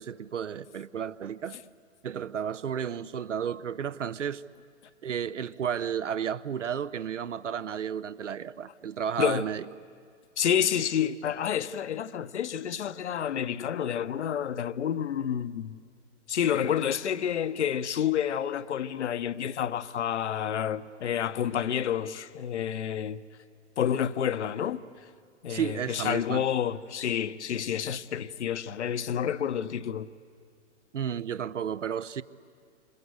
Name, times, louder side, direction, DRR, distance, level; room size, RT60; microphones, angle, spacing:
voice 1, 0.0-1.6 2.0-4.4 5.0-9.6 25.5-26.4 30.9-32.2, right 8 dB, 80° right, 0.9 m, -32 dB
voice 2, 10.4-15.8 16.3-23.2 23.8-24.8 25.4-30.1, left 9 dB, 70° left, 1.0 m, -29 dB
28.0 x 25.5 x 8.1 m
figure-of-eight pair, 120°, 36 cm